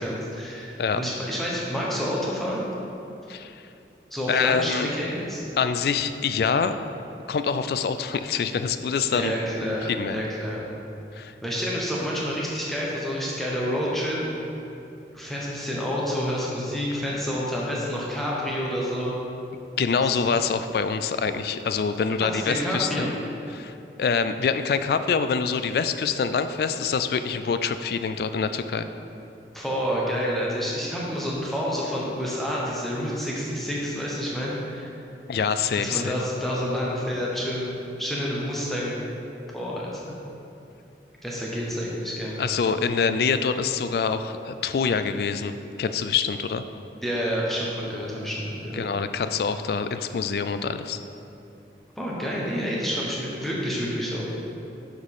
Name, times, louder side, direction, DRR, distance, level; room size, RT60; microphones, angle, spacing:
voice 1, 0.0-2.6 4.1-5.4 9.1-10.6 11.4-14.2 15.1-19.1 20.0-20.3 22.3-23.1 29.5-34.9 35.8-39.0 39.5-40.2 41.2-42.6 47.0-48.8 52.0-54.3, equal, ahead, -5 dB, 1.1 m, -29 dB
voice 2, 4.3-4.9 5.6-6.8 7.3-9.3 9.9-10.2 11.1-11.3 19.8-23.1 23.5-28.9 35.3-36.1 42.4-45.5 45.8-46.6 48.7-51.0, left 5 dB, 60° left, 10 dB, 0.3 m, -25 dB
6.3 x 5.1 x 5.5 m, 2.8 s
head